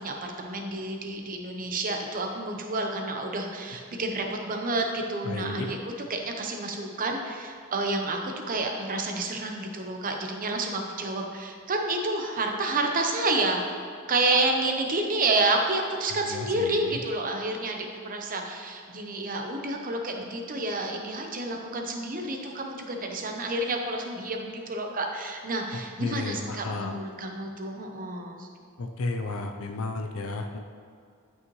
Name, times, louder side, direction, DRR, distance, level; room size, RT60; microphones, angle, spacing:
voice 1, 0.0-13.6 14.1-28.5, right 2 dB, 40° right, 3 dB, 0.8 m, -29 dB
voice 2, 5.2-5.7 16.1-17.0 25.7-27.0 28.8-30.6, left 3 dB, 65° left, 4 dB, 0.6 m, -33 dB
11.0 x 5.6 x 3.1 m, 2.3 s
head